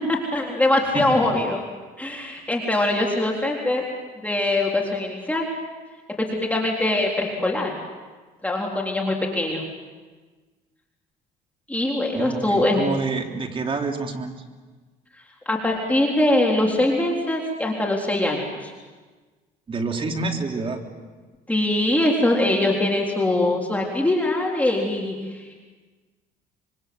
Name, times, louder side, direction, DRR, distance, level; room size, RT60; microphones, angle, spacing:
voice 1, 0.1-1.6 2.0-3.8 4.2-5.5 6.2-7.8 8.4-9.6 11.7-12.8 15.5-18.7 21.5-25.6, left 1 dB, 10° left, -1 dB, 3.9 m, -22 dB
voice 2, 0.9-1.3 12.1-14.4 19.7-20.8, right 3 dB, 30° right, 3 dB, 3.4 m, -28 dB
26.5 x 24.5 x 7.9 m, 1.3 s
cardioid pair, 110°, 17 cm